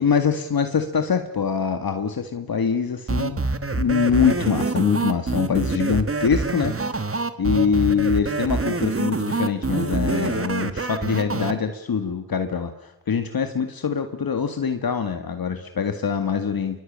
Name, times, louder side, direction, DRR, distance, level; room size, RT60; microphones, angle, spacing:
voice 1, 0.0-3.4 3.7-16.8, left 6 dB, 60° left, 7 dB, 2.0 m, -24 dB
sound 1, 3.1-11.5, right 3 dB, 35° right, 2.0 m, -25 dB
23.5 x 22.5 x 8.8 m, 0.93 s
cardioid pair, 55°, 40 cm